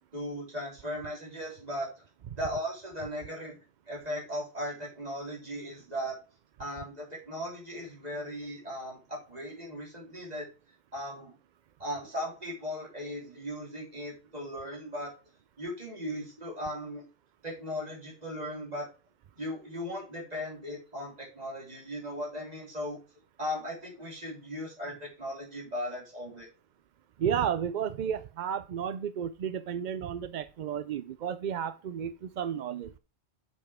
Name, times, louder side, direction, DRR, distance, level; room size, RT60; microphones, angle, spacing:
voice 1, 0.1-1.9 2.3-3.6 3.9-6.2 6.6-10.5 10.9-11.3 11.8-15.1 15.6-17.0 17.4-18.9 19.4-23.0 23.4-26.5, equal, 35° right, 3.7 m, -37 dB
voice 2, 27.2-32.9, right 8 dB, 60° right, 0.5 m, -32 dB
7.9 x 6.9 x 3.5 m
omnidirectional pair, 1.2 m